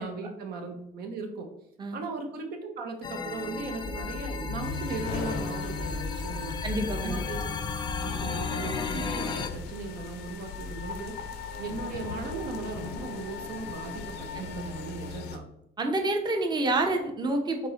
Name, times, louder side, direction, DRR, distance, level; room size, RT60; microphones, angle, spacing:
voice 1, 0.0-1.5 1.9-6.6 7.0-7.6 8.0-11.2 11.6-15.4, right 4 dB, 70° right, 4 dB, 0.6 m, -37 dB
sound 1, 3.0-9.5, left 5 dB, 25° left, 0.3 m, -34 dB
sound 2, 4.6-15.4, left 5 dB, 85° left, 0.5 m, -38 dB
voice 2, 6.6-7.2 14.3-14.5 15.8-17.7, right 2 dB, 25° right, 4 dB, 0.6 m, -28 dB
5.3 x 2.1 x 3.7 m, 0.78 s
cardioid pair, 110°, 17 cm